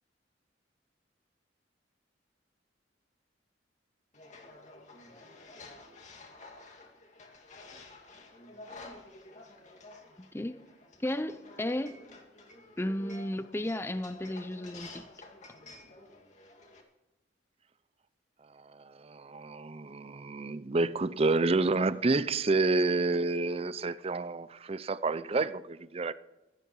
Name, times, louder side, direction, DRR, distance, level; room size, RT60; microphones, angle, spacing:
sound 1, 4.1-16.8, left 2 dB, 40° left, 2.3 m, -51 dB
voice 1, 11.0-12.0 12.8-15.0, left 1 dB, 15° left, 0.5 m, -34 dB
voice 2, 18.4-26.1, right 3 dB, 35° right, 0.5 m, -29 dB
16.0 x 14.0 x 4.7 m
head